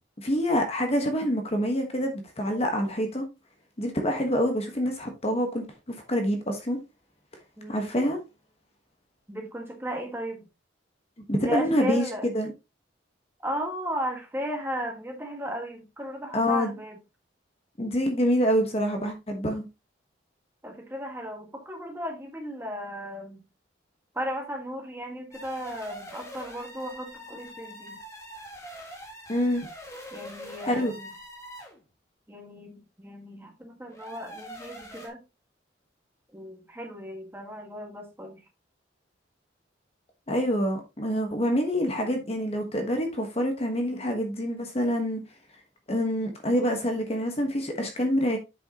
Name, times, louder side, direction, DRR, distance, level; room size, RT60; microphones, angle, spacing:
voice 1, 0.2-3.2 3.8-5.7 6.1-6.8 7.7-8.2 11.3-12.0 12.3-12.5 16.3-16.7 17.8-19.6 29.3-29.7 30.7-30.9 40.3-45.2 45.9-48.4, equal, 30° left, 1.2 m, -26 dB
voice 2, 7.6-8.0 9.3-10.4 11.3-12.3 13.4-17.0 20.6-23.4 24.1-28.0 30.1-31.1 32.3-35.2 36.3-38.4, equal, 10° right, 1.7 m, -35 dB
sound 1, 25.3-31.8 33.9-35.1, equal, 15° left, 1.8 m, -43 dB
7.8 x 6.3 x 2.9 m
head